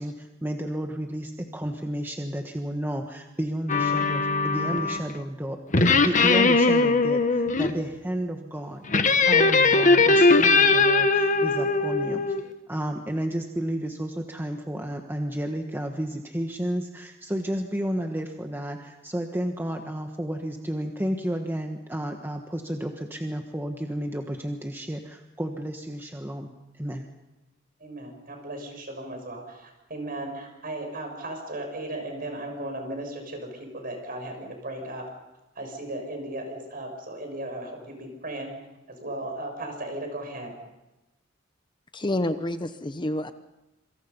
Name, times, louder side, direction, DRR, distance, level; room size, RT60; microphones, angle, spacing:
voice 1, 0.0-12.4 12.7-26.5 26.8-27.0, right 1 dB, 10° right, 4 dB, 1.3 m, -32 dB
sound 1, 3.7-5.1 5.7-7.7 8.9-12.4, left 3 dB, 40° left, 1.5 m, -20 dB
voice 2, 27.8-35.1 35.5-38.5 38.9-40.5, right 1 dB, 50° right, 4 dB, 6.5 m, -36 dB
voice 3, 41.9-43.3, left 1 dB, 25° left, 10 dB, 0.9 m, -28 dB
27.0 x 25.0 x 5.5 m, 0.99 s
head